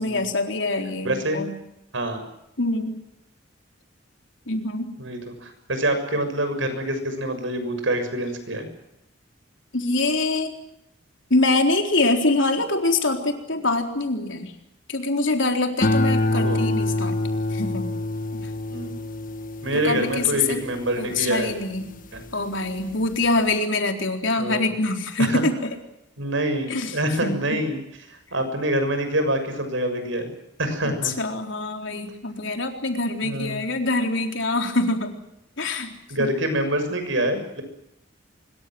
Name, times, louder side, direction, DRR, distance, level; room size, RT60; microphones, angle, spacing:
voice 1, 0.0-1.5 2.6-3.0 4.5-4.9 9.7-10.5 11.3-14.5 14.9-17.2 17.5-17.9 18.3-18.5 19.8-20.6 21.0-21.9 22.3-25.7 26.7-27.4 30.8-35.1 35.6-36.3, left 2 dB, 70° left, 4 dB, 4.0 m, -24 dB
voice 2, 1.1-1.4 1.9-2.2 5.0-8.7 16.3-16.7 18.7-19.0 19.6-21.5 22.1-22.2 24.4-24.7 25.2-25.4 26.2-27.8 28.1-30.3 30.6-31.1 33.2-33.6 36.1-37.6, right 1 dB, 75° right, 8 dB, 6.8 m, -26 dB
sound 1, 15.8-22.3 22.8-23.3, left 1 dB, 45° left, 1.1 m, -26 dB
25.5 x 22.5 x 7.8 m, 0.84 s
head